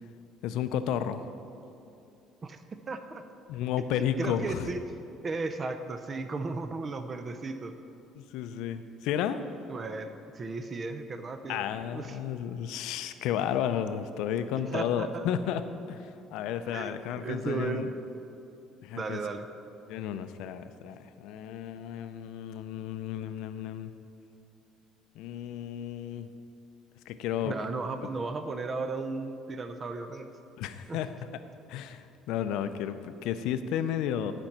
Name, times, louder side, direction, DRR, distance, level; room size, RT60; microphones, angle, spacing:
voice 1, 0.4-1.2 3.5-4.7 8.2-9.4 11.5-15.6 15.9-17.9 18.8-19.2 19.9-23.9 25.2-26.3 27.1-27.5 30.6-31.1 31.7-34.3, left 9 dB, 80° left, 11 dB, 0.5 m, -32 dB
voice 2, 2.4-3.2 4.0-4.8 5.2-7.7 9.7-10.1 10.3-11.7 11.9-12.2 14.7-15.3 16.7-17.9 18.9-19.5 27.4-30.3 30.9-31.0, right 3 dB, 30° right, 8 dB, 0.5 m, -35 dB
11.5 x 5.3 x 5.9 m, 2.7 s
cardioid pair, 130°, 0 cm